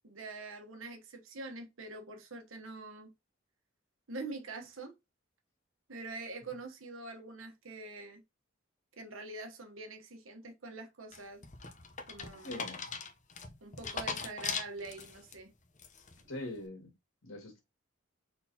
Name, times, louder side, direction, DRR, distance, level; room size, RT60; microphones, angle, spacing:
voice 1, 0.0-3.1 4.1-4.9 5.9-8.2 9.0-11.5 12.1-12.6 13.6-15.5, right 3 dB, 90° right, 1.1 m, -45 dB
sound 1, 11.1-15.3 15.8-16.2, left 5 dB, 40° left, 0.8 m, -40 dB
voice 2, 12.3-12.8 16.3-16.9 17.2-17.6, left 1 dB, 80° left, 2.1 m, -42 dB
4.3 x 3.9 x 2.8 m
head